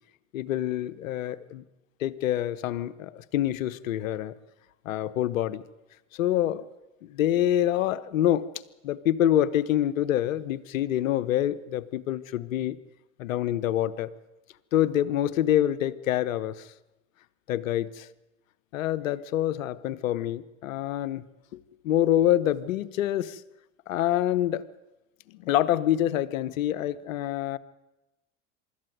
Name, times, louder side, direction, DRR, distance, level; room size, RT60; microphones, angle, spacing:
voice 1, 0.3-1.6 2.0-4.3 4.8-5.6 6.1-6.6 7.0-8.5 8.8-12.8 13.2-14.1 14.7-16.7 17.5-18.1 18.7-21.2 21.8-23.4 23.9-24.6 25.3-27.6, left 12 dB, 80° left, 15 dB, 1.0 m, -26 dB
24.0 x 13.5 x 9.3 m, 1.0 s
hypercardioid pair, 75°, 40 cm